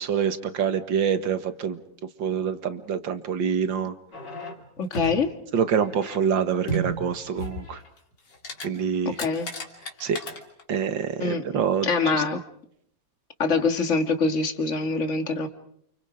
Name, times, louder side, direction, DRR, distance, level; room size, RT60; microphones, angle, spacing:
voice 1, 0.0-1.8 2.2-3.9 5.5-7.8 8.6-9.2 10.0-10.2 10.7-12.2, right 7 dB, 85° right, 10 dB, 2.2 m, -26 dB
sound 1, 4.1-5.3 5.7-6.2 6.7-8.0 8.3-8.7 8.9-10.6 11.1-11.2, right 2 dB, 65° left, 3.6 m, -34 dB
voice 2, 4.8-5.4 9.2-9.5 11.2-11.4 11.8-12.4 13.4-15.5, left 4 dB, 40° left, 7 dB, 2.2 m, -24 dB
29.5 x 29.0 x 5.0 m, 0.69 s
omnidirectional pair, 2.0 m